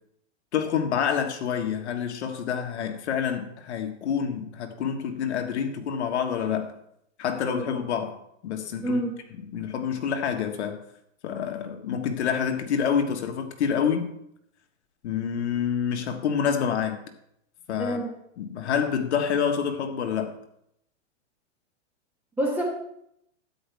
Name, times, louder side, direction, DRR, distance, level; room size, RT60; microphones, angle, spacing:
voice 1, 0.5-6.7 7.2-9.0 9.5-10.8 11.2-14.1 15.0-17.0 17.7-18.0 18.4-20.3, left 7 dB, 65° left, 1.6 m, -27 dB
voice 2, 8.8-9.2 17.8-18.1 22.4-22.6, right 1 dB, 5° right, 1.5 m, -27 dB
12.5 x 9.3 x 3.5 m
supercardioid pair, 175°, 36 cm